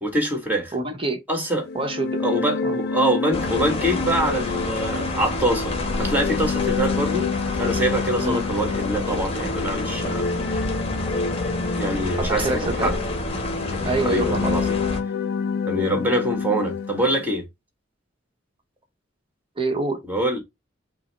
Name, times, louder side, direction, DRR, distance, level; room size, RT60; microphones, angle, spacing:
voice 1, 0.0-0.7 1.3-1.7 2.2-7.3 7.6-10.2 10.5-10.6 11.8-12.9 13.7-14.8 15.7-17.4 20.0-20.4, right 1 dB, 10° right, 1.6 m, -24 dB
voice 2, 0.7-1.2 1.7-2.2 2.6-2.8 8.2-8.4 10.4-10.5 12.1-12.9 13.8-14.6 15.9-16.1 19.6-20.0, right 3 dB, 30° right, 1.0 m, -26 dB
sound 1, 1.6-17.3, left 5 dB, 60° left, 0.5 m, -28 dB
sound 2, 3.3-15.0, left 2 dB, 30° left, 1.0 m, -29 dB
5.4 x 2.1 x 4.1 m
head